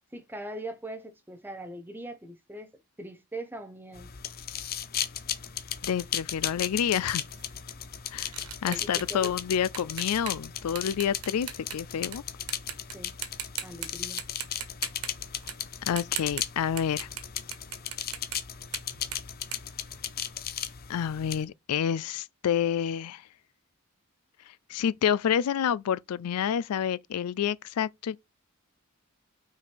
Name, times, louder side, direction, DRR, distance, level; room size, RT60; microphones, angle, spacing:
voice 1, 0.1-2.7 3.0-4.1 8.7-9.3 12.9-13.2 13.6-14.2, right 1 dB, 10° right, 1.0 m, -41 dB
sound 1, 3.9-21.4, left 9 dB, 45° left, 0.7 m, -36 dB
voice 2, 5.8-7.2 8.1-8.3 8.6-12.2 15.9-17.1 20.9-23.2 24.7-28.2, left 8 dB, 80° left, 0.4 m, -28 dB
sound 2, 7.3-12.2 12.5-12.9 13.2-13.9 14.2-20.5, right 9 dB, 80° right, 1.4 m, -39 dB
5.9 x 4.6 x 5.2 m
head